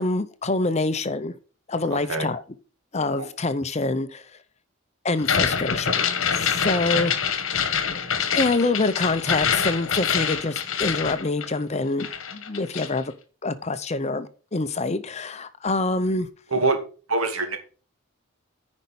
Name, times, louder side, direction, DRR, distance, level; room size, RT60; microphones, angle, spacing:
voice 1, 0.0-1.3 1.7-2.4 2.9-4.2 5.0-7.3 8.3-13.0 13.4-16.3, left 2 dB, 30° left, 11 dB, 0.7 m, -26 dB
voice 2, 1.9-2.3 3.2-3.3 6.6-7.1 16.5-16.8 17.1-17.6, right 3 dB, 90° right, 5 dB, 2.3 m, -25 dB
sound 1, 5.2-11.7 12.0-13.0, left 7 dB, 65° left, 1.3 m, -25 dB
9.8 x 5.3 x 5.9 m, 0.37 s
head